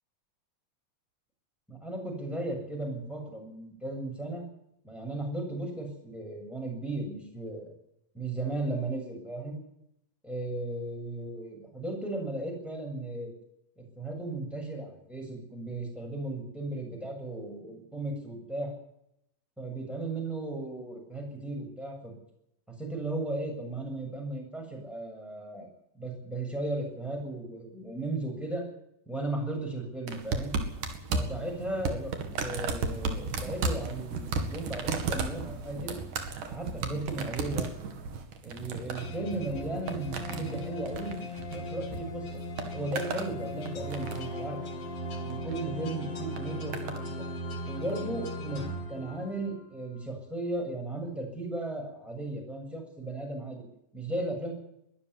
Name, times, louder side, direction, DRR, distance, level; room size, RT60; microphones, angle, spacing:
voice 1, 1.7-4.4 4.8-7.7 8.1-9.6 10.2-13.3 13.8-18.7 19.6-22.1 22.8-25.7 25.9-28.6 29.1-30.6 31.1-36.0 36.5-37.9 38.4-42.4 42.7-44.6 45.2-46.9 47.7-53.6 53.9-54.5, right 2 dB, ahead, 0 dB, 7.4 m, -36 dB
sound 1, 30.1-42.0 42.3-43.3 43.7-44.4 45.3-45.6 46.4-47.0 47.9-48.0, right 4 dB, 70° right, 3.7 m, -34 dB
sound 2, 39.0-49.6, equal, 45° left, 3.7 m, -38 dB
21.5 x 13.0 x 9.7 m, 0.79 s
omnidirectional pair, 3.9 m